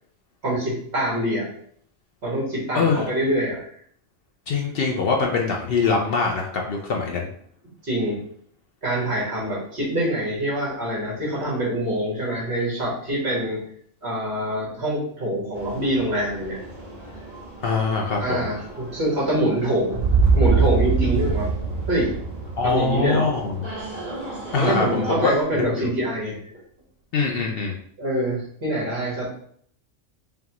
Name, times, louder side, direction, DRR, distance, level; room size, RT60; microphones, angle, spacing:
voice 1, 0.4-1.5 2.2-3.7 7.8-8.2 8.8-13.6 14.0-16.6 18.2-20.0 20.3-21.5 21.9-22.1 22.6-23.3 24.5-26.4 28.0-29.3, right 1 dB, 60° right, -6 dB, 2.0 m, -25 dB
voice 2, 2.7-3.0 4.5-7.3 17.6-18.5 22.6-23.6 24.5-25.9 27.1-27.7, left 4 dB, 60° left, 0 dB, 0.7 m, -23 dB
sound 1, 15.5-25.4, right 1 dB, 20° right, 1.5 m, -38 dB
sound 2, 19.9-24.0, right 4 dB, 90° right, 0.3 m, -22 dB
5.2 x 2.3 x 2.9 m, 0.63 s
omnidirectional pair, 1.3 m